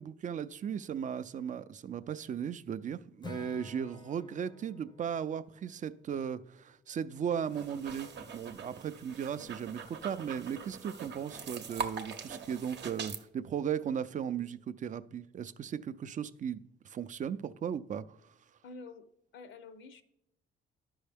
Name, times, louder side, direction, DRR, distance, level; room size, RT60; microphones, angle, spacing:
voice 1, 0.0-18.2, right 8 dB, 40° right, 0.4 m, -37 dB
Acoustic guitar / Strum, 3.2-7.3, left 4 dB, 20° left, 0.5 m, -52 dB
sound 1, 7.4-13.2, right 5 dB, 60° right, 0.8 m, -43 dB
voice 2, 18.6-19.1 19.3-20.0, left 3 dB, 75° left, 0.7 m, -48 dB
12.0 x 5.4 x 3.4 m
cardioid pair, 90°, 20 cm